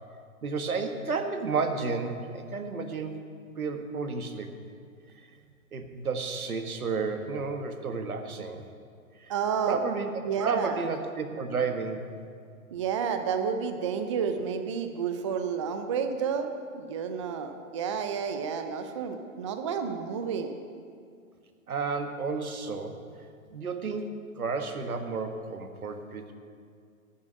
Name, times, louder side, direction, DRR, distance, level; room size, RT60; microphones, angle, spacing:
voice 1, 0.4-3.2 3.6-4.5 5.7-8.6 9.2-9.3 9.7-10.1 10.4-12.1 21.7-23.0 23.5-26.3, right 4 dB, 80° right, 6 dB, 1.7 m, -32 dB
voice 2, 9.3-9.8 10.2-10.8 12.7-20.6, right 6 dB, 25° right, 7 dB, 0.5 m, -30 dB
12.0 x 7.3 x 9.1 m, 2.2 s
hypercardioid pair, 140°, 43 cm